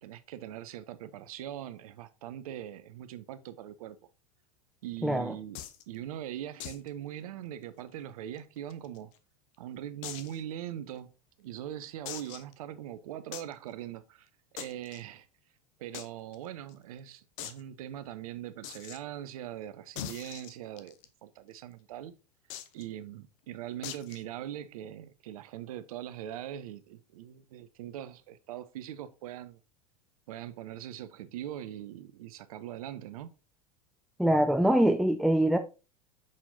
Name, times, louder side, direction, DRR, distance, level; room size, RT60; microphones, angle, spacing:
voice 1, 0.0-4.0 4.8-9.1 9.6-11.1 11.4-15.3 15.8-21.0 21.2-22.1 22.7-29.6 30.3-33.3, right 11 dB, 65° right, 0.7 m, -41 dB
voice 2, 5.0-5.3 34.2-35.6, right 1 dB, ahead, 0.3 m, -24 dB
sound 1, 5.6-5.8 6.6-6.9 7.2-7.3 7.6-7.7 8.4-9.2 10.0-10.4 11.0-11.1 12.1-12.5 13.3-13.5 14.6-15.0 15.9-16.1 16.3-16.4 16.7-16.8 17.4-17.6 18.6-19.0 20.0-21.1 22.5-22.8 23.8-24.2, left 11 dB, 55° left, 0.8 m, -42 dB
6.4 x 5.7 x 2.7 m
figure-of-eight pair, 85°, 20 cm